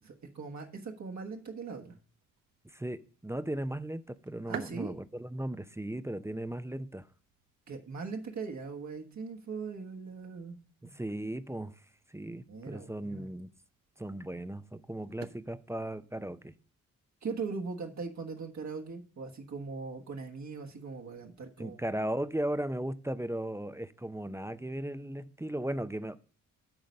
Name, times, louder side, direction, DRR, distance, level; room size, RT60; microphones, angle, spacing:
voice 1, 0.0-2.0 4.5-5.0 7.7-10.9 12.5-13.3 17.2-21.8, right 4 dB, 55° right, 1.4 m, -40 dB
sound 1, 2.1-16.2, right 9 dB, 85° right, 0.7 m, -54 dB
voice 2, 2.6-7.1 10.9-11.7 12.1-13.5 14.0-16.5 21.6-26.3, right 1 dB, 10° right, 0.6 m, -36 dB
8.9 x 4.0 x 6.5 m
supercardioid pair, 45°, 33 cm